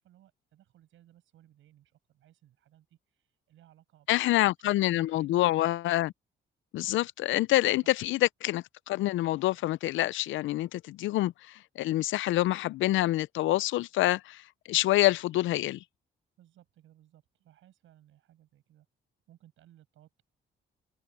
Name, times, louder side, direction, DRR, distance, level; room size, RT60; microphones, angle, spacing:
voice 1, 0.0-5.4 7.7-7.8 16.4-18.9 19.3-20.2, right 12 dB, 80° right, 7.7 m, -61 dB
voice 2, 4.1-6.1 6.7-14.4 14.7-15.8, left 16 dB, 80° left, 0.5 m, -27 dB
open air
cardioid pair, 90°, 20 cm